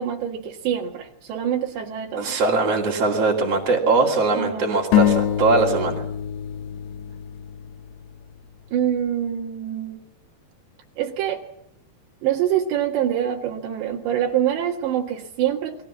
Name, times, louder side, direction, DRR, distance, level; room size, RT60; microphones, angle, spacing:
voice 1, 0.0-2.4 4.3-4.8 8.7-10.0 11.0-11.4 12.2-15.9, right 10 dB, 75° right, 1 dB, 3.9 m, -25 dB
voice 2, 2.2-6.0, right 3 dB, 40° right, -3 dB, 3.2 m, -21 dB
sound 1, 4.9-8.5, left 11 dB, 75° left, 3.3 m, -24 dB
29.0 x 21.5 x 7.3 m, 0.73 s
omnidirectional pair, 5.1 m